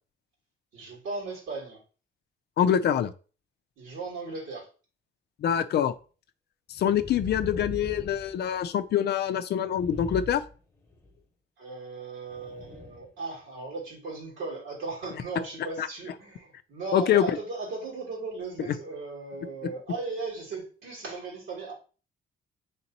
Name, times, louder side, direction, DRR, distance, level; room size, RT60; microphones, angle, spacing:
voice 1, 0.7-1.8 3.8-4.7 11.6-21.7, right 3 dB, 80° right, -4 dB, 2.3 m, -37 dB
voice 2, 2.6-3.1 5.4-5.9 6.7-10.4 15.8-15.9 16.9-17.4, left 9 dB, 55° left, 12 dB, 0.4 m, -25 dB
sound 1, 6.7-8.9 9.6-11.1 12.3-13.1 13.6-13.7, left 1 dB, 15° left, 1.1 m, -41 dB
3.6 x 2.9 x 4.0 m, 0.37 s
cardioid pair, 90°, 20 cm